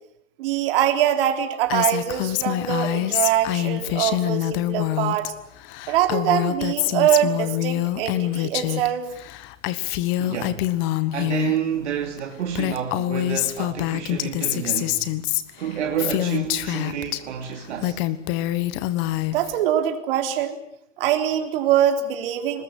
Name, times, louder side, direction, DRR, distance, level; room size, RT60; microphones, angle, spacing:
voice 1, 0.4-5.3 5.9-9.1 19.3-20.6 21.0-22.6, right 11 dB, 45° right, 3.8 m, -23 dB
Female speech woman speaking, 1.7-5.3 5.6-8.9 9.2-11.6 12.2-12.3 12.5-17.2 17.6-19.5, left 15 dB, 30° left, 1.4 m, -25 dB
voice 2, 10.2-10.7 11.1-15.1 15.6-18.0, right 8 dB, 60° right, 2.9 m, -29 dB
24.0 x 20.5 x 8.9 m
hypercardioid pair, 135°, 38 cm